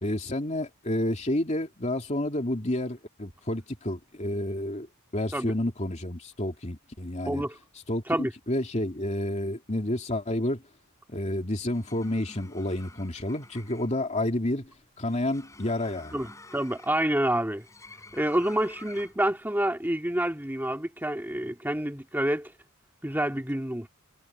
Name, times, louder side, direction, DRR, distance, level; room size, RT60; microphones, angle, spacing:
voice 1, 0.0-4.9 5.1-7.4 7.9-10.6 11.1-14.7 15.0-16.3, left 1 dB, 30° left, 2.9 m, -30 dB
sound 1, 11.6-19.3, left 2 dB, 15° left, 4.5 m, -50 dB
voice 2, 16.1-17.6 18.1-22.5 23.0-23.9, right 1 dB, 10° right, 2.2 m, -28 dB
head